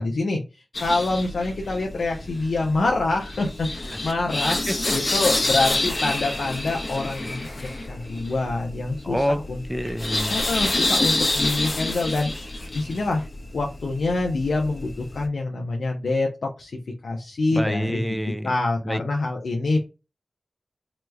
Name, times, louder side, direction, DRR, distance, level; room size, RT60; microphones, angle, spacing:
voice 1, 0.0-4.6 4.9-9.6 10.3-13.2 13.5-16.7 17.0-18.0 18.4-19.8, left 2 dB, 85° left, 0.6 m, -26 dB
sound 1, 0.7-15.3, left 2 dB, 55° left, 0.9 m, -28 dB
voice 2, 4.7-5.1 9.0-9.4 9.7-10.4 17.5-18.5 18.8-19.0, equal, 5° right, 0.4 m, -27 dB
3.0 x 2.3 x 3.2 m
cardioid pair, 50°, 0 cm